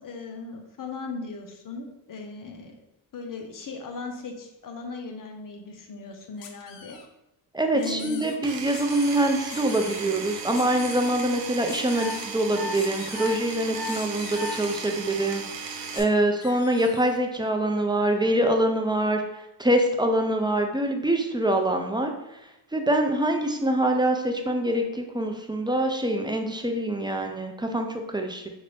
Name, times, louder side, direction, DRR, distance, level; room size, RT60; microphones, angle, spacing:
voice 1, 0.0-2.7 3.1-7.0 7.7-8.3, left 4 dB, 50° left, 3 dB, 0.9 m, -37 dB
sound 1, 6.4-7.1 7.8-8.4 8.7-9.2 9.5-10.0 10.5-11.1 11.7-12.3 12.7-13.4 13.8-14.8 15.9-16.1 16.4-17.2, left 6 dB, 85° left, 0.7 m, -43 dB
voice 2, 7.5-19.2 19.6-22.1 22.7-28.5, right 1 dB, 10° right, 4 dB, 0.4 m, -25 dB
Power tool, 8.4-16.0, right 5 dB, 75° right, 0.9 m, -36 dB
sound 2, 11.9-12.1 12.5-12.7 13.1-13.3 13.7-13.9 14.3-14.5, left 2 dB, 35° right, 0.8 m, -33 dB
5.4 x 2.6 x 3.3 m, 0.88 s
cardioid pair, 90°, 43 cm